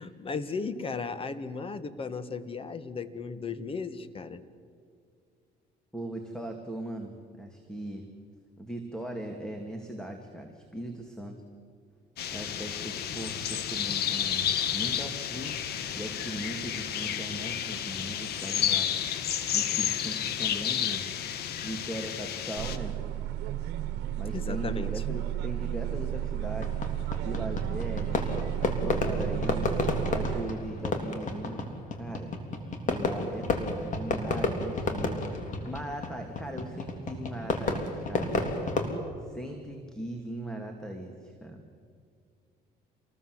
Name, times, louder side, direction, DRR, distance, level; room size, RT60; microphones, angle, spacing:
voice 1, 0.0-4.4 24.3-25.0, left 4 dB, 35° left, 13 dB, 1.6 m, -36 dB
voice 2, 5.9-8.1 8.6-11.4 12.3-14.5 14.7-18.9 19.5-21.1 21.6-23.0 24.2-26.8 27.2-28.5 28.8-29.7 30.1-31.7 31.9-32.3 32.9-38.3 39.2-41.6, right 1 dB, 5° left, 4 dB, 2.5 m, -39 dB
sound 1, 12.2-22.8, left 9 dB, 70° left, 1.6 m, -31 dB
sound 2, 22.6-30.4, right 12 dB, 85° right, 1.2 m, -32 dB
Fireworks, 26.6-38.9, left 3 dB, 50° left, 3.6 m, -31 dB
27.5 x 20.0 x 8.0 m, 2.2 s
cardioid pair, 110°, 17 cm